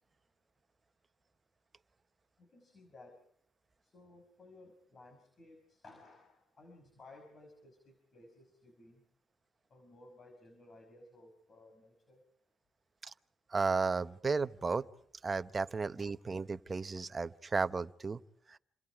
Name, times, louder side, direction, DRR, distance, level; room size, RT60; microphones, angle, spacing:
voice 1, 2.4-3.2 3.8-9.0 9.7-12.2, left 2 dB, 45° left, 5 dB, 5.9 m, -58 dB
voice 2, 13.5-14.9 15.2-18.2 18.5-18.6, right 4 dB, 30° right, 11 dB, 1.0 m, -34 dB
29.0 x 26.5 x 4.9 m, 0.64 s
cardioid pair, 90°, 0 cm